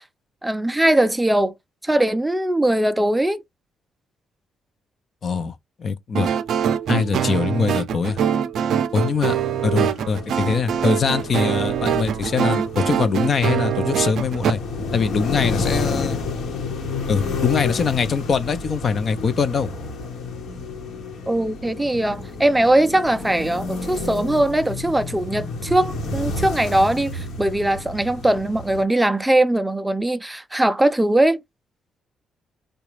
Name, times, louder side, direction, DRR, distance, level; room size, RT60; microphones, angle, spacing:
voice 1, 0.4-1.5 1.8-3.4 21.3-31.4, right 1 dB, 10° right, 0.3 m, -20 dB
voice 2, 5.2-6.3 6.9-8.2 8.9-9.4 9.6-14.6 14.9-16.2 17.1-19.7, left 5 dB, 50° left, 0.6 m, -22 dB
sound 1, 6.1-14.5, right 8 dB, 70° right, 0.4 m, -23 dB
sound 2, 9.3-28.8, left 3 dB, 75° left, 1.2 m, -30 dB
3.9 x 2.3 x 3.1 m
cardioid pair, 90°, 0 cm